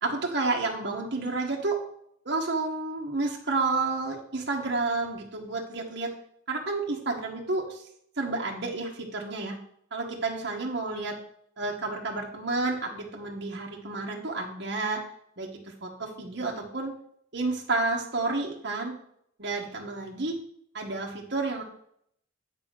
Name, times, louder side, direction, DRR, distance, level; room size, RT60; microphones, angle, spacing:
voice 1, 0.0-1.8 2.2-6.1 6.5-7.8 8.2-9.6 9.9-11.2 11.6-15.0 15.4-16.9 17.3-19.0 19.4-20.4 20.7-21.6, right 3 dB, 60° right, -1 dB, 1.4 m, -30 dB
8.8 x 4.2 x 6.3 m, 0.67 s
head